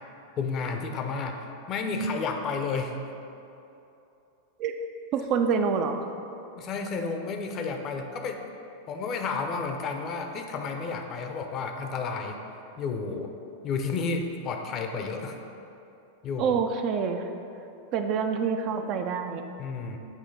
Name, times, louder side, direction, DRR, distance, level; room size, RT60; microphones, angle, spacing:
voice 1, 0.4-3.0 6.5-8.4 8.9-12.4 12.8-13.3 13.6-15.4 16.2-16.6 19.6-20.0, left 4 dB, 35° left, 4 dB, 0.5 m, -31 dB
voice 2, 5.1-6.1 16.4-17.2 17.9-19.4, right 6 dB, 40° right, 6 dB, 0.4 m, -26 dB
8.1 x 2.8 x 5.1 m, 2.8 s
figure-of-eight pair, 90°, 0 cm